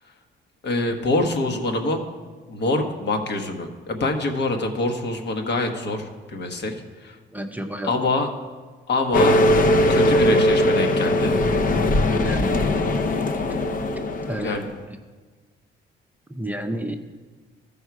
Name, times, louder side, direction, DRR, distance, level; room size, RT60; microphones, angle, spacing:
voice 1, 0.6-2.0 2.5-7.2 7.8-8.3 8.9-9.4 9.9-11.4 14.4-14.7, left 2 dB, 60° left, 4 dB, 1.3 m, -25 dB
voice 2, 7.3-8.0 12.1-12.6 14.3-14.7 16.3-17.0, right 1 dB, 10° right, 4 dB, 0.6 m, -30 dB
sound 1, 9.1-14.7, left 1 dB, 45° left, 0.8 m, -20 dB
14.0 x 5.5 x 4.7 m, 1.4 s
cardioid pair, 90°, 20 cm